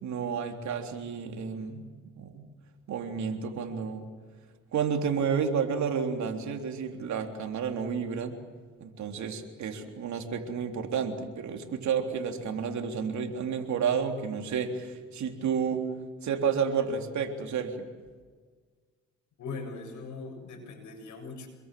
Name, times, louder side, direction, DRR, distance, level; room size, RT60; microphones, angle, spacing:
voice 1, 0.0-1.9 2.2-2.5 2.9-4.0 4.7-8.3 8.8-15.8 16.2-17.9, right 6 dB, 70° right, 4 dB, 3.5 m, -31 dB
voice 2, 19.4-21.5, left 4 dB, 75° left, 3 dB, 7.5 m, -40 dB
27.0 x 22.5 x 7.7 m, 1.6 s
cardioid pair, 90°, 30 cm